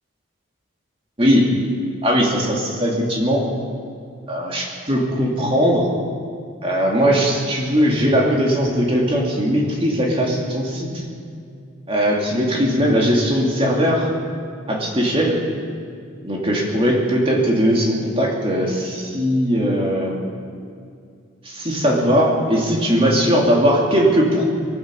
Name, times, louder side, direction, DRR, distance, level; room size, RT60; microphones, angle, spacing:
voice 1, 1.2-1.5 2.0-3.4 4.3-5.9 6.6-11.0 11.9-14.1 14.7-15.4 16.2-20.1 21.4-24.4, equal, 25° right, -2 dB, 2.6 m, -19 dB
22.0 x 9.4 x 7.1 m, 2.4 s
head